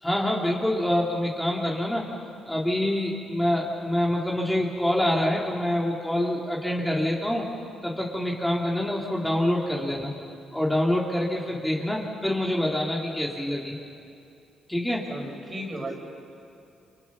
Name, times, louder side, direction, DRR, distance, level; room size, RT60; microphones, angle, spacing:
voice 1, 0.0-2.0 2.5-7.5 7.8-10.1 10.5-13.8 14.7-15.0, left 1 dB, 5° left, -3 dB, 3.0 m, -26 dB
voice 2, 15.1-16.1, right 1 dB, 30° right, 2 dB, 4.8 m, -35 dB
30.0 x 25.5 x 6.1 m, 2.6 s
cardioid pair, 90°, 0 cm